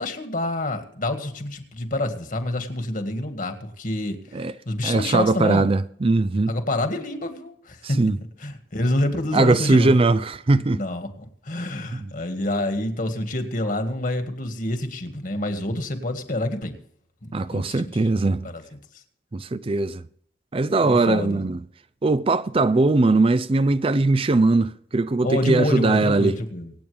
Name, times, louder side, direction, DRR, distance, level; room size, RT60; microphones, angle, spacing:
voice 1, 0.0-5.7 6.5-8.0 8.4-9.9 10.7-16.8 17.2-18.1 18.4-18.6 20.8-21.4 25.2-26.7, left 1 dB, 50° left, 1.9 m, -27 dB
voice 2, 4.8-6.5 7.8-8.2 9.3-10.8 11.9-12.1 17.3-18.5 19.3-20.0 20.5-21.6 22.0-26.4, right 3 dB, 30° right, 0.5 m, -20 dB
25.0 x 8.9 x 3.4 m
head